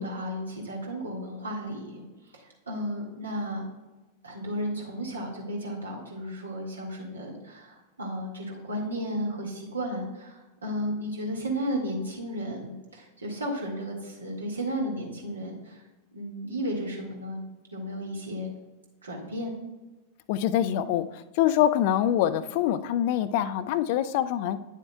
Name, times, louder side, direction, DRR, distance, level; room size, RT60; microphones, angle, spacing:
voice 1, 0.0-2.0 2.3-3.7 4.2-15.8 16.1-17.4 17.7-18.5 19.0-19.5, equal, 75° right, -1 dB, 1.8 m, -33 dB
voice 2, 20.3-24.6, left 11 dB, 50° left, 13 dB, 0.4 m, -25 dB
9.7 x 7.3 x 2.3 m, 1.1 s
figure-of-eight pair, 90°, 0 cm